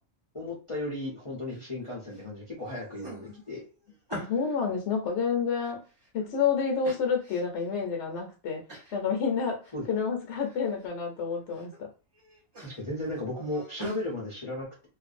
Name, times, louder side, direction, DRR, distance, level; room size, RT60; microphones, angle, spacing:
voice 1, 0.3-3.6 9.7-9.8 12.6-14.9, left 1 dB, 35° left, -5 dB, 0.5 m, -35 dB
sound 1, 1.5-2.2 2.6-4.6 5.1-6.3 6.8-7.7 8.1-8.2 8.7-9.0 9.4-10.0 10.3-10.9 11.3-11.8 12.1-14.0, right 2 dB, 35° right, 0.4 m, -46 dB
voice 2, 4.1-5.8 6.1-8.6 8.9-9.6 9.9-11.9, left 6 dB, 65° left, 2 dB, 0.9 m, -29 dB
2.5 x 2.2 x 2.5 m, 0.34 s
omnidirectional pair, 1.4 m